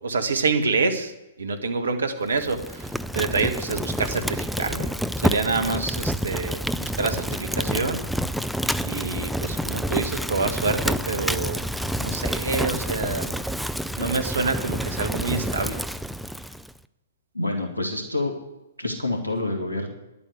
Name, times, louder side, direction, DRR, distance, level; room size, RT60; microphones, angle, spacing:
voice 1, 0.0-1.1 1.4-8.0 8.8-13.4 14.0-15.8, right 4 dB, 65° right, 7 dB, 1.6 m, -27 dB
Fire, 2.3-16.7, equal, ahead, 0.4 m, -28 dB
voice 2, 17.3-18.3 18.8-19.9, left 2 dB, 90° right, 3 dB, 2.1 m, -27 dB
11.0 x 8.5 x 8.2 m, 0.98 s
figure-of-eight pair, 115°, 0 cm